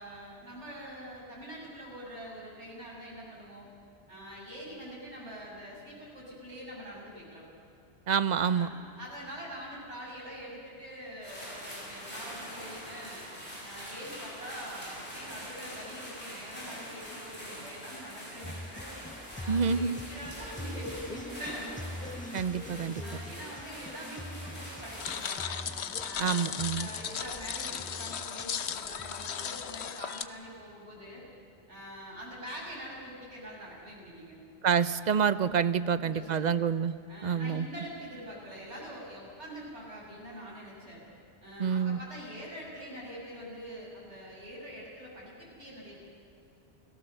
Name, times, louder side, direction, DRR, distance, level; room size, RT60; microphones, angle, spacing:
voice 1, 0.0-3.7 4.1-7.4 8.4-13.2 13.6-19.0 19.3-21.8 23.0-25.6 26.0-31.2 31.7-34.4 35.8-36.5 37.1-41.0 41.4-46.0, equal, 90° right, -4 dB, 7.2 m, -44 dB
voice 2, 8.1-8.7 19.5-20.0 22.3-23.0 26.2-26.9 34.6-37.0 37.2-37.7 41.6-42.0, right 7 dB, 45° right, 14 dB, 0.7 m, -27 dB
sound 1, 11.2-25.3, equal, 50° left, 7.5 m, -44 dB
sound 2, 18.4-29.9, left 1 dB, 10° left, 0.5 m, -44 dB
sound 3, 25.0-30.2, left 8 dB, 75° left, 1.1 m, -36 dB
29.0 x 17.5 x 6.8 m, 2.7 s
omnidirectional pair, 1.1 m